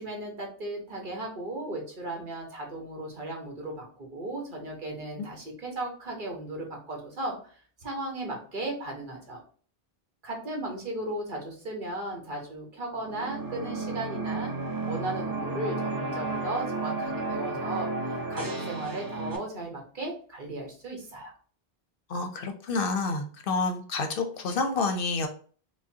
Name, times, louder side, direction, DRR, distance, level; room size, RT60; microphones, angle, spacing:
voice 1, 0.0-7.5 7.8-9.4 10.2-14.5 14.9-21.3, right 2 dB, 55° right, 0 dB, 1.1 m, -36 dB
sound 1, 12.9-19.4, right 3 dB, 25° right, 0.5 m, -33 dB
voice 2, 22.1-25.3, left 3 dB, 65° left, 6 dB, 0.7 m, -29 dB
4.9 x 2.1 x 2.6 m, 0.43 s
omnidirectional pair, 1.1 m